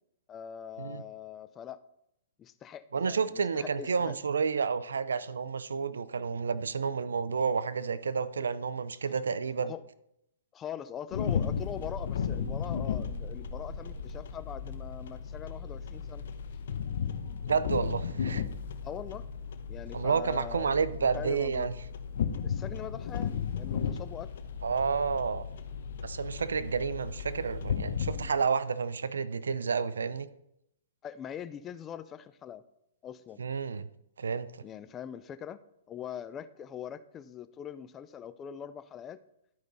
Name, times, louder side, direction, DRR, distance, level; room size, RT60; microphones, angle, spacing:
voice 1, 0.3-1.8 2.4-4.2 9.1-9.2 9.6-9.8 10.5-16.2 18.8-19.3 19.7-20.7 21.1-21.7 22.4-24.3 31.0-32.6 33.0-33.4 34.6-35.6 35.9-39.2, left 9 dB, 20° left, 13 dB, 0.4 m, -42 dB
voice 2, 2.9-9.7 17.5-18.4 19.9-21.7 24.6-25.4 26.0-30.3 33.4-33.9 34.2-34.5, right 5 dB, 90° right, 15 dB, 0.5 m, -30 dB
sound 1, 11.1-28.3, left 7 dB, 65° left, 0.9 m, -35 dB
11.5 x 5.0 x 4.0 m, 0.80 s
hypercardioid pair, 135°, 0 cm